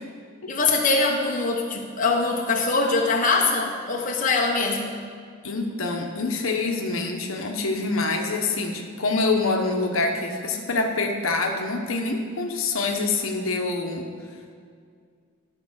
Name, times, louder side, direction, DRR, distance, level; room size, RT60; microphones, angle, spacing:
voice 1, 0.5-5.0, left 3 dB, 40° left, 0 dB, 1.0 m, -23 dB
voice 2, 5.4-14.1, left 3 dB, 75° left, 2 dB, 1.0 m, -26 dB
12.0 x 4.6 x 6.4 m, 2.1 s
head